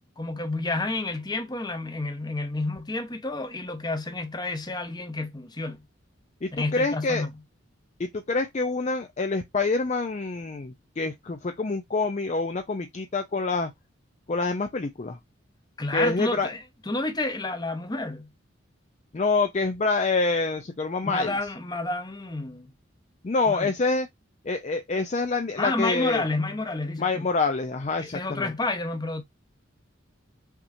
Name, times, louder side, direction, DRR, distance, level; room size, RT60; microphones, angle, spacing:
voice 1, 0.2-5.8 6.5-7.3 15.8-18.3 21.0-22.7 23.5-23.7 25.6-27.3 28.0-29.2, left 2 dB, 20° left, 0.8 m, -30 dB
voice 2, 6.4-7.3 8.0-13.7 14.3-15.2 15.9-16.5 19.1-21.3 23.2-24.1 24.4-26.2 27.0-28.5, left 3 dB, 35° left, 0.5 m, -26 dB
5.8 x 2.9 x 2.6 m
head